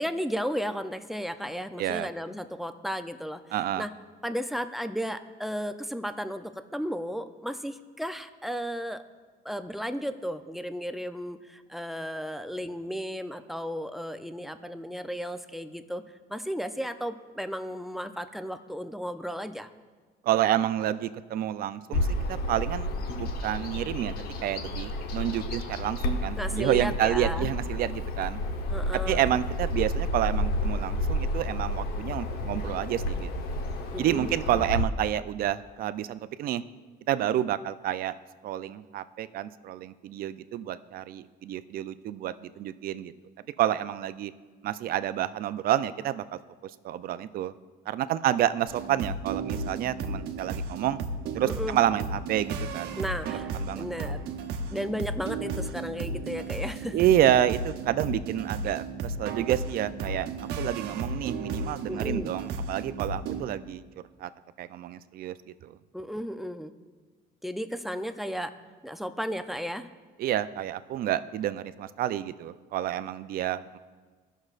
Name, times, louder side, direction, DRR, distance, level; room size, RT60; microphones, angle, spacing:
voice 1, 0.0-3.4 3.8-3.9 4.2-9.0 9.4-16.0 16.3-19.7 26.4-27.5 28.7-29.3 33.9-34.7 51.4-51.8 53.0-54.2 54.7-57.0 61.9-62.3 65.9-66.7 67.4-68.5 68.8-69.9, equal, ahead, 10 dB, 0.5 m, -34 dB
voice 2, 1.8-2.1 3.5-3.9 20.2-22.9 23.2-24.2 24.4-28.4 29.1-33.3 34.0-36.6 37.1-38.2 38.4-43.1 43.6-44.3 44.6-46.2 46.6-47.5 47.9-51.0 51.3-53.0 53.2-53.9 56.9-60.3 60.6-63.8 64.2-64.3 64.6-65.4 65.6-65.8 70.2-73.8, right 12 dB, 60° right, 13 dB, 0.4 m, -29 dB
Bird vocalization bird call bird song, 21.9-34.8, left 1 dB, 70° left, 1.0 m, -31 dB
sound 1, 48.7-63.4, right 3 dB, 80° right, 0.9 m, -34 dB
17.0 x 6.4 x 2.4 m, 1.4 s
cardioid pair, 110°, 17 cm